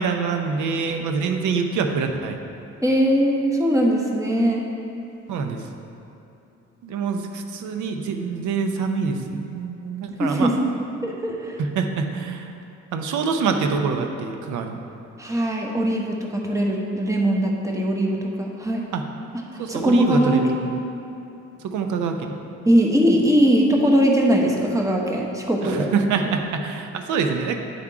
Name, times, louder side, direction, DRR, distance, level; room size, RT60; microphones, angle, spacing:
voice 1, 0.0-2.4 5.3-5.6 6.8-10.5 11.6-12.5 12.9-14.8 18.9-19.0 19.6-20.8 21.6-22.4 25.6-27.6, right 5 dB, 80° right, 5 dB, 0.7 m, -25 dB
voice 2, 2.8-4.6 10.2-10.7 11.0-11.6 15.2-18.9 19.5-20.5 22.6-25.9 26.2-26.3, equal, 10° right, -1 dB, 1.0 m, -21 dB
9.3 x 3.6 x 4.7 m, 2.9 s
cardioid pair, 90°, 30 cm